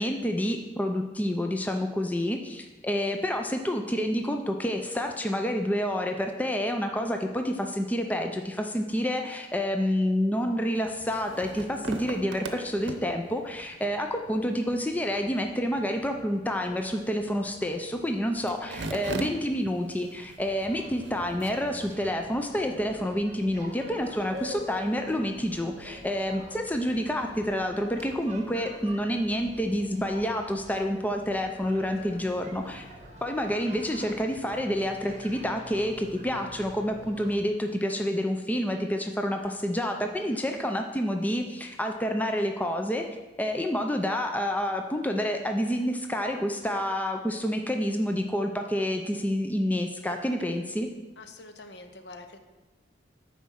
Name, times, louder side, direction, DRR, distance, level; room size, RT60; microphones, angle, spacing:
voice 1, 0.0-32.9 33.2-43.0 43.4-50.9, equal, 10° left, 4 dB, 0.5 m, -28 dB
sound 1, 10.8-22.0, right 3 dB, 80° right, 0.7 m, -42 dB
sound 2, 20.6-37.3, right 1 dB, 40° right, 1.1 m, -46 dB
voice 2, 40.1-40.5 51.2-52.4, left 2 dB, 65° left, 7 dB, 0.8 m, -46 dB
9.2 x 4.3 x 6.2 m, 1.1 s
head